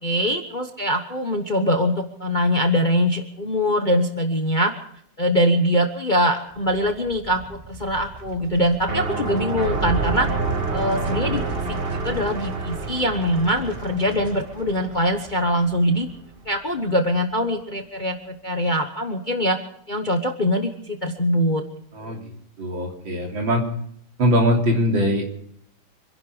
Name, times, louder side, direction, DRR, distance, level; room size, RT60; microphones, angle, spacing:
voice 1, 0.0-4.7 5.2-10.3 10.7-16.1 16.4-19.6 19.9-21.6 22.1-22.2, equal, 30° left, 5 dB, 1.0 m, -23 dB
sound 1, 6.5-17.1, right 3 dB, 45° right, 0.4 m, -35 dB
sound 2, 8.9-15.6, right 3 dB, 30° right, 1.7 m, -29 dB
voice 2, 22.6-23.6 24.2-25.3, equal, 65° right, 1 dB, 4.1 m, -21 dB
26.5 x 11.0 x 5.0 m, 0.70 s
omnidirectional pair, 2.2 m